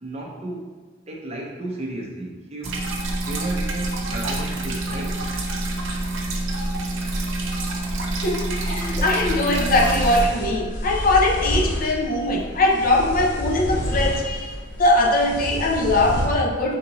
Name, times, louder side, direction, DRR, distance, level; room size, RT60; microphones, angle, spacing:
voice 1, 0.0-0.7 1.1-2.8 3.3-5.4, right 1 dB, 35° right, -1 dB, 0.6 m, -34 dB
sound 1, 2.6-10.3, right 2 dB, 75° right, 0.6 m, -27 dB
voice 2, 8.2-16.8, left 2 dB, 45° left, 1 dB, 0.5 m, -21 dB
sound 2, 8.8-16.2, equal, 70° left, 1.2 m, -29 dB
3.7 x 3.7 x 2.9 m, 1.4 s
head